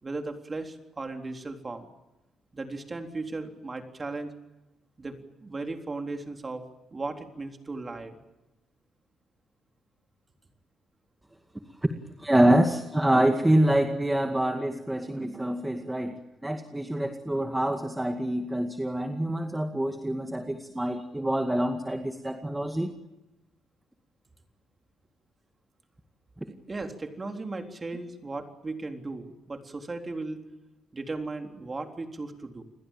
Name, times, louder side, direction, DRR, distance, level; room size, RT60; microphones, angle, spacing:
voice 1, 0.0-1.9 2.5-4.3 5.0-8.2 26.5-30.5 30.9-32.6, right 3 dB, 25° right, 4 dB, 3.8 m, -36 dB
voice 2, 12.2-22.9, right 1 dB, 10° right, 4 dB, 2.1 m, -26 dB
29.5 x 21.5 x 7.4 m, 0.99 s
cardioid pair, 90°, 0 cm